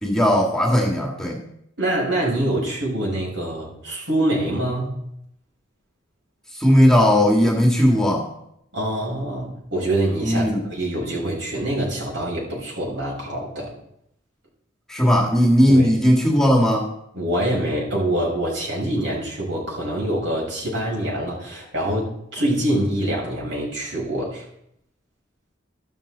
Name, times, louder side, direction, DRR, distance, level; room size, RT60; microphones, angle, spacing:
voice 1, 0.0-1.4 6.6-8.3 10.2-10.6 14.9-16.9, equal, 5° left, -1 dB, 2.0 m, -17 dB
voice 2, 1.8-5.0 8.7-13.7 15.7-15.9 17.1-24.4, right 1 dB, 70° right, -3 dB, 6.6 m, -25 dB
13.5 x 12.5 x 4.0 m, 0.75 s
head